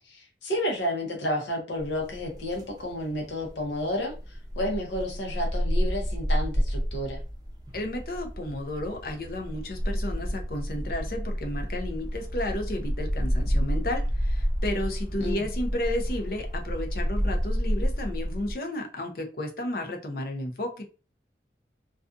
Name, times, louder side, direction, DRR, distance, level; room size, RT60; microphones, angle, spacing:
voice 1, 0.1-4.1 4.6-7.2 15.2-15.4, equal, 90° left, 0 dB, 0.8 m, -31 dB
sound 1, 1.8-18.5, equal, 20° right, 0.5 m, -30 dB
voice 2, 7.7-20.8, left 1 dB, 55° left, 3 dB, 0.6 m, -33 dB
2.4 x 2.3 x 2.4 m, 0.35 s
head